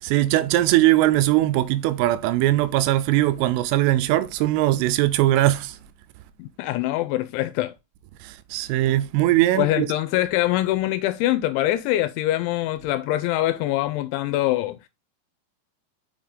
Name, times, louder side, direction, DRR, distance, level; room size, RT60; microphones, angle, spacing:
voice 1, 0.0-5.8 8.2-9.9, right 15 dB, 90° right, 3.3 m, -20 dB
voice 2, 6.4-7.7 9.6-14.8, left 15 dB, 85° left, 2.7 m, -24 dB
6.8 x 5.7 x 3.7 m
omnidirectional pair, 5.7 m